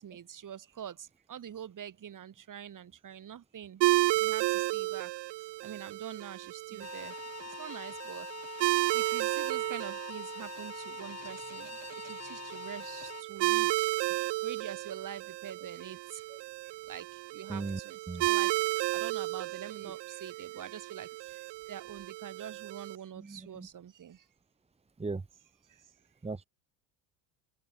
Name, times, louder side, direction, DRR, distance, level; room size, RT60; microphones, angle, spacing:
voice 1, 0.0-3.8 4.2-5.1 5.6-7.2 7.6-11.7 12.0-16.2 16.9-17.1 17.3-18.5 18.9-21.4 21.7-24.2, right 9 dB, 40° right, 4.5 m, -45 dB
sound 1, 3.8-23.0, right 20 dB, 60° right, 1.1 m, -33 dB
sound 2, 6.8-13.2, left 8 dB, 35° left, 2.2 m, -45 dB
voice 2, 17.5-17.8 18.1-18.2 23.3-23.7 25.0-25.2 26.2-26.4, right 3 dB, 15° right, 1.4 m, -36 dB
open air
supercardioid pair, 85°, 47 cm